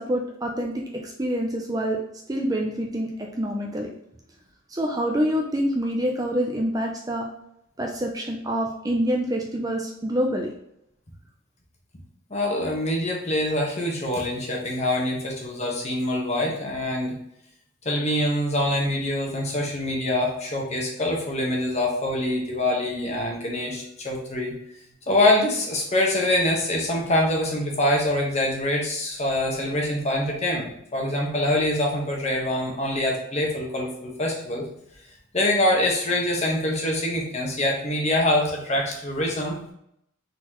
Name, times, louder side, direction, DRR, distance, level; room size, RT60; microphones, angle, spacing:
voice 1, 0.0-2.0 2.3-3.9 4.7-7.3 7.8-10.5, equal, 20° right, 1 dB, 0.5 m, -26 dB
voice 2, 12.3-17.1 17.8-24.5 25.1-34.6 35.3-39.6, left 1 dB, 35° left, -1 dB, 1.2 m, -24 dB
4.2 x 4.0 x 3.0 m, 0.76 s
head